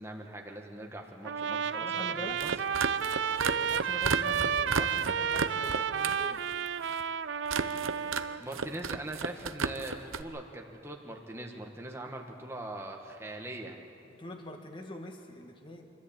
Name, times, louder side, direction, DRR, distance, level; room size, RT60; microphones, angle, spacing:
voice 1, 0.0-2.5 8.4-13.8, right 1 dB, 15° right, 1 dB, 1.5 m, -41 dB
Trumpet, 1.2-8.4, right 7 dB, 60° right, 0.4 m, -31 dB
voice 2, 1.8-2.4 3.5-6.4 14.0-15.9, left 1 dB, 25° left, 3 dB, 1.7 m, -44 dB
sound 1, 2.3-6.2 6.5-7.0 7.5-8.2 8.5-10.2, right 5 dB, 90° right, 0.8 m, -33 dB
26.0 x 13.5 x 8.7 m, 2.7 s
head